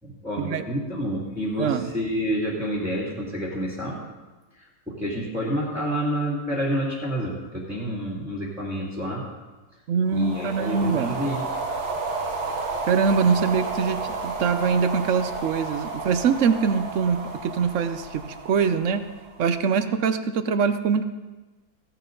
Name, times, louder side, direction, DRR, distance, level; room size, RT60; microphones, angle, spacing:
voice 1, 0.0-4.0 4.5-9.2 10.1-11.5, equal, ahead, -7 dB, 2.3 m, -29 dB
voice 2, 1.6-1.9 9.9-11.2 12.9-19.0 19.4-21.1, right 6 dB, 60° right, 10 dB, 1.0 m, -23 dB
sound 1, 10.1-19.6, right 3 dB, 80° right, 1.8 m, -32 dB
16.0 x 10.0 x 3.9 m, 1.2 s
omnidirectional pair, 1.7 m